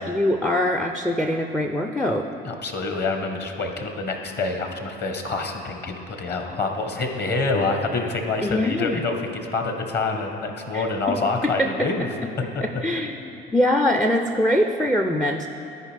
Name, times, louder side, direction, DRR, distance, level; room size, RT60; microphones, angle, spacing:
voice 1, 0.1-2.3 8.4-9.0 10.7-10.8 11.4-11.9 12.8-15.5, left 1 dB, ahead, 4 dB, 0.4 m, -23 dB
voice 2, 2.4-12.1 12.5-12.6, left 3 dB, 35° left, 4 dB, 1.1 m, -26 dB
13.5 x 5.0 x 3.3 m, 2.8 s
hypercardioid pair, 60°, 29 cm